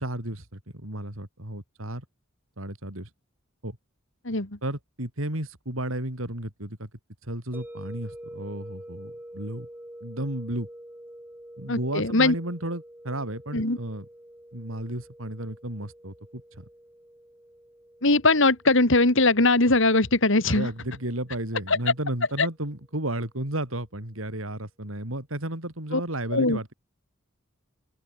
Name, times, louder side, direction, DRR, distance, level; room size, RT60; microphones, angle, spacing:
voice 1, 0.0-2.0 2.6-3.1 3.6-3.8 4.6-6.9 7.2-9.7 10.0-10.7 11.6-14.1 14.5-16.6 20.5-26.7, right 1 dB, 90° right, 5.6 m, -33 dB
sound 1, 7.5-22.5, right 1 dB, 10° right, 4.8 m, -47 dB
voice 2, 11.7-12.3 13.5-13.8 18.0-20.7 21.7-21.8 22.4-22.5 25.9-26.0 26.3-26.6, left 2 dB, 65° left, 3.0 m, -21 dB
open air
head